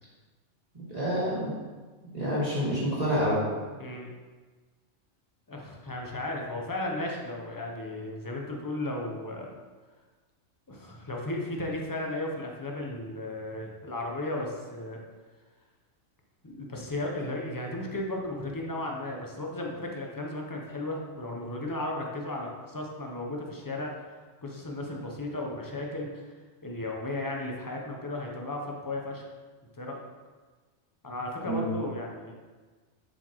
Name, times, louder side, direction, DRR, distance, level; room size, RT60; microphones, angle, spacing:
voice 1, 0.9-1.5 2.1-3.4 31.4-31.7, equal, 35° right, -9 dB, 1.8 m, -27 dB
voice 2, 3.8-4.1 5.5-9.5 10.7-15.0 16.4-26.3 26.6-29.3 29.7-30.0 31.0-32.3, left 1 dB, 20° left, 0 dB, 0.6 m, -35 dB
7.3 x 4.8 x 3.0 m, 1.4 s
omnidirectional pair, 1.3 m